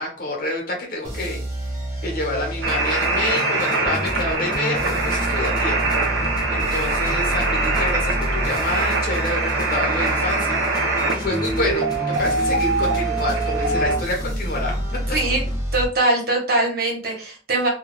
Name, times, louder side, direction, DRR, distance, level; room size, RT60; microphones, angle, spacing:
voice 1, 0.0-1.4 2.0-5.8 6.5-14.7, left 2 dB, 50° left, 0 dB, 1.0 m, -28 dB
sound 1, 1.0-15.9, equal, 15° right, 0.6 m, -29 dB
sound 2, 2.6-14.0, right 3 dB, 80° right, 0.6 m, -23 dB
sound 3, 2.7-15.6, left 1 dB, 20° left, 0.3 m, -36 dB
voice 2, 15.1-15.4 15.7-17.7, right 2 dB, 55° right, -1 dB, 1.0 m, -21 dB
2.4 x 2.3 x 3.0 m, 0.38 s
head